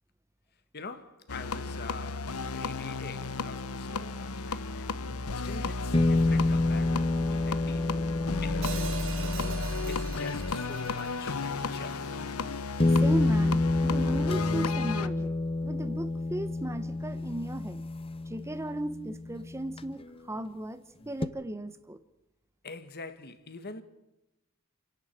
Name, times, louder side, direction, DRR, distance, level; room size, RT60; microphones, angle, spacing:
voice 1, 0.7-5.1 5.3-12.1 22.6-23.8, left 3 dB, 50° left, 1.6 m, -45 dB
sound 1, 1.3-15.1, left 3 dB, 90° left, 1.0 m, -34 dB
sound 2, 5.1-5.2 5.9-11.0 12.2-12.3 12.8-20.2 21.2-21.3, left 2 dB, 25° left, 0.7 m, -29 dB
Hi-hat, 8.6-12.8, right 6 dB, 65° right, 2.4 m, -42 dB
voice 2, 12.9-15.3 15.6-17.8 18.3-22.0, right 1 dB, 15° right, 0.8 m, -36 dB
28.5 x 11.5 x 8.9 m
head